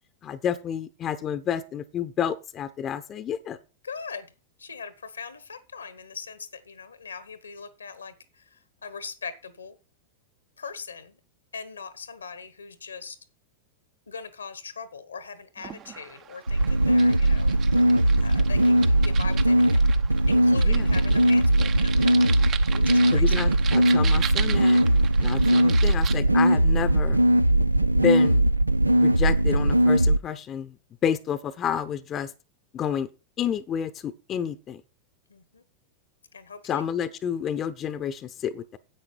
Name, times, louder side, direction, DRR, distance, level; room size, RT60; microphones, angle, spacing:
voice 1, 0.2-3.6 20.6-20.9 23.1-24.8 25.2-27.2 28.0-28.4 28.9-30.8 31.0-32.3 32.7-33.1 33.4-34.8 36.6-38.8, left 8 dB, 30° left, 14 dB, 0.8 m, -30 dB
voice 2, 3.8-4.3 4.6-9.8 10.6-11.2 11.5-13.2 14.1-17.9 18.2-19.8 20.3-23.3 35.3-35.6 36.3-36.8, left 5 dB, 75° left, 14 dB, 1.3 m, -41 dB
sound 1, 15.6-26.2, right 9 dB, 30° right, 0.8 m, -38 dB
sound 2, 16.5-30.2, right 1 dB, 85° right, 0.5 m, -20 dB
10.0 x 8.1 x 4.5 m, 0.30 s
figure-of-eight pair, 90°, 0 cm